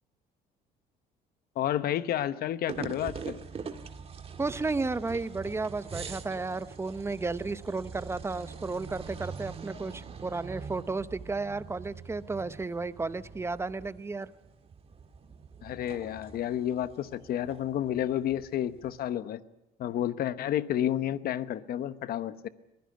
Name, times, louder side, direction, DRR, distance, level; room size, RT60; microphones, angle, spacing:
voice 1, 1.6-3.4 15.6-19.4 19.8-22.5, left 11 dB, 65° left, 13 dB, 1.0 m, -30 dB
sound 1, 2.7-19.1, right 5 dB, 35° right, 1.7 m, -44 dB
voice 2, 4.4-14.3, right 3 dB, 15° right, 14 dB, 0.9 m, -33 dB
22.0 x 16.0 x 9.3 m, 0.92 s
cardioid pair, 110°, 17 cm